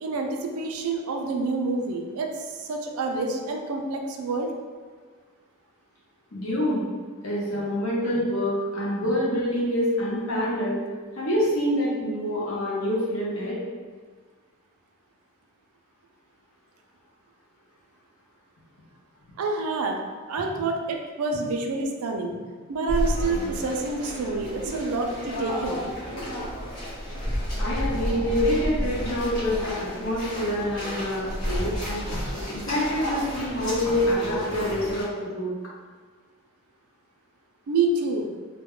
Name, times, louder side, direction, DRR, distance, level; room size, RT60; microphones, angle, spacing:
voice 1, 0.0-4.5 19.4-20.0 20.3-22.3 22.7-25.8 37.7-38.3, right 3 dB, 75° right, 2 dB, 0.4 m, -28 dB
voice 2, 6.3-6.8 7.2-10.8 11.1-13.6 27.5-32.1 32.5-35.5, left 1 dB, 70° left, -6 dB, 0.8 m, -26 dB
sound 1, 22.9-35.0, equal, 20° left, 0.9 m, -31 dB
2.2 x 2.1 x 3.7 m, 1.5 s
head